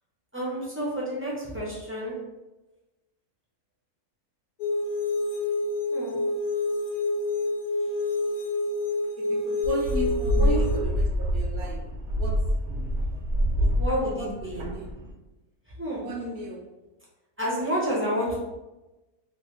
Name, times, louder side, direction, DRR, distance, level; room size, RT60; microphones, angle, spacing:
voice 1, 0.3-2.1 5.9-6.2 10.4-10.6 13.8-14.6 15.8-16.1 17.4-18.4, equal, 15° right, -7 dB, 0.4 m, -29 dB
sound 1, 4.6-10.8, left 2 dB, 75° left, 1.0 m, -28 dB
voice 2, 9.2-11.8 12.2-12.4 14.2-14.9 16.0-16.6 18.3-18.4, equal, 75° right, 1 dB, 1.1 m, -36 dB
sound 2, 9.6-15.1, equal, 60° right, 0.8 m, -26 dB
3.1 x 2.2 x 3.1 m, 1.1 s
omnidirectional pair, 1.6 m